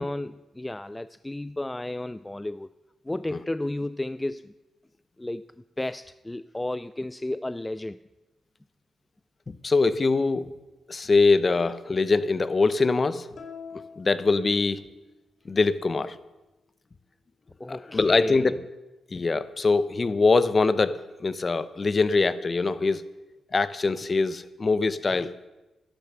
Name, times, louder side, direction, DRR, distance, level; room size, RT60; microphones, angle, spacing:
voice 1, 0.0-2.7 3.0-4.5 5.2-5.5 5.8-8.0 17.6-18.5 25.1-25.3, left 1 dB, 15° left, 14 dB, 0.3 m, -33 dB
voice 2, 9.5-10.5 10.9-13.3 14.0-14.8 15.4-16.2 17.7-18.6 19.1-23.0 23.5-25.3, left 3 dB, 40° left, 15 dB, 0.7 m, -23 dB
sound 1, 13.4-15.2, left 6 dB, 65° left, 2.1 m, -45 dB
11.5 x 11.0 x 6.7 m, 1.1 s
cardioid pair, 75°, 0 cm